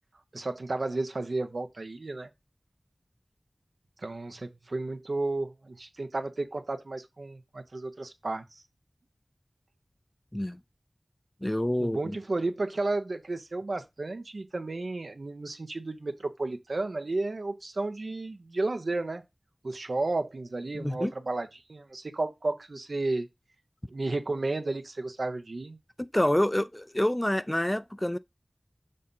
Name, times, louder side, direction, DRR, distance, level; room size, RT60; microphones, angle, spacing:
voice 1, 0.3-2.3 4.0-8.6 11.8-19.2 19.6-23.3 23.9-25.8, right 2 dB, 80° right, 1.0 m, -32 dB
voice 2, 11.4-12.2 20.7-21.1 26.0-28.2, left 1 dB, 15° left, 0.4 m, -27 dB
6.6 x 2.8 x 5.4 m
wide cardioid pair, 60°, 0 cm